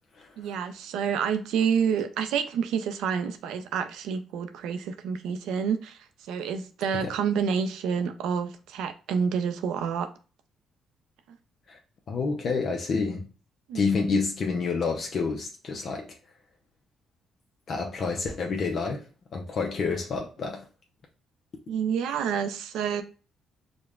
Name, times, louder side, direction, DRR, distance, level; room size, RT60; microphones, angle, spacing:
voice 1, 0.4-10.1 13.7-14.1 21.7-23.0, right 7 dB, 90° right, 0.4 m, -28 dB
voice 2, 12.1-13.2 13.7-16.1 17.7-19.0 19.3-20.6, left 4 dB, 55° left, 0.6 m, -28 dB
5.0 x 2.2 x 2.3 m
cardioid pair, 90°, 0 cm